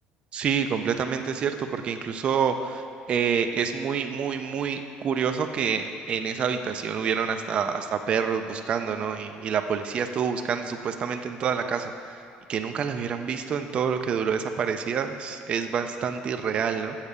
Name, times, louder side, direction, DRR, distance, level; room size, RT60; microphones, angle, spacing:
voice 1, 0.3-2.8 3.1-11.9 12.5-17.0, right 7 dB, 35° right, 7 dB, 0.3 m, -27 dB
7.2 x 4.7 x 6.6 m, 2.4 s
cardioid pair, 160°, 3 cm